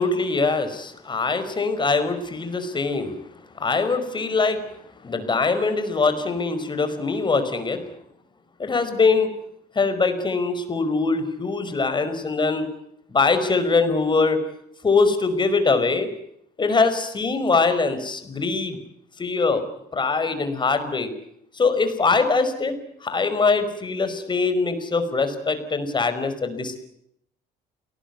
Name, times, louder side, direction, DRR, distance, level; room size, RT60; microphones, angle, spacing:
voice 1, 0.0-3.2 3.6-4.6 5.0-7.8 8.6-9.3 9.8-12.7 13.1-14.4 14.8-16.1 16.6-18.8 19.2-19.6 19.9-21.1 21.5-22.7 23.0-26.8, left 4 dB, 25° left, 10 dB, 5.2 m, -22 dB
28.5 x 19.5 x 9.6 m, 0.75 s
cardioid pair, 110°, 17 cm